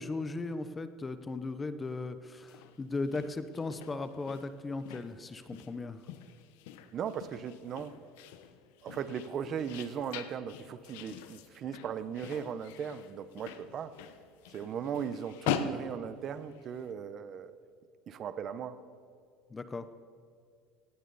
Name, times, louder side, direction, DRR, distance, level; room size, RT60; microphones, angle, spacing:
voice 1, 0.0-6.0 19.5-19.9, left 3 dB, 15° left, 11 dB, 0.8 m, -37 dB
sound 1, 2.4-16.9, left 9 dB, 85° left, 1.1 m, -43 dB
voice 2, 6.9-8.0 8.8-14.0 14.5-17.6 18.1-18.8, right 7 dB, 35° right, 13 dB, 0.8 m, -38 dB
17.5 x 16.0 x 4.1 m, 2.3 s
cardioid pair, 150°, 0 cm